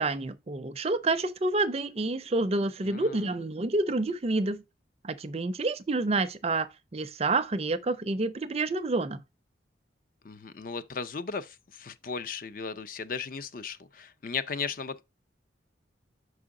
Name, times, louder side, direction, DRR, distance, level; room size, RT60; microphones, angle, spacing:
voice 1, 0.0-4.6 5.0-9.2, right 2 dB, 35° right, 0.5 m, -28 dB
voice 2, 2.8-3.3 10.2-15.0, left 5 dB, 45° left, 0.5 m, -36 dB
6.0 x 4.8 x 3.6 m
head